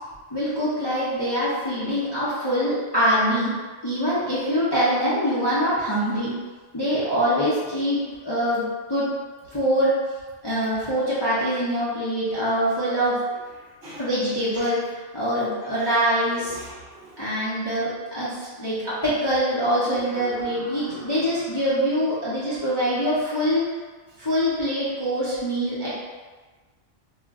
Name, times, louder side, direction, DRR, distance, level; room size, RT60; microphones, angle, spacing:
voice 1, 0.3-3.5 3.8-6.3 6.7-9.1 9.5-9.9 10.4-13.2 14.0-14.8 15.1-16.6 17.2-23.6 24.2-25.9, equal, 30° left, -11 dB, 0.5 m, -24 dB
voice 2, 13.6-14.1 14.5-14.7 15.8-16.0 16.5-17.4 20.1-21.3 22.5-22.9, right 1 dB, 55° right, -6 dB, 0.7 m, -43 dB
2.3 x 2.1 x 3.5 m, 1.3 s
omnidirectional pair, 1.2 m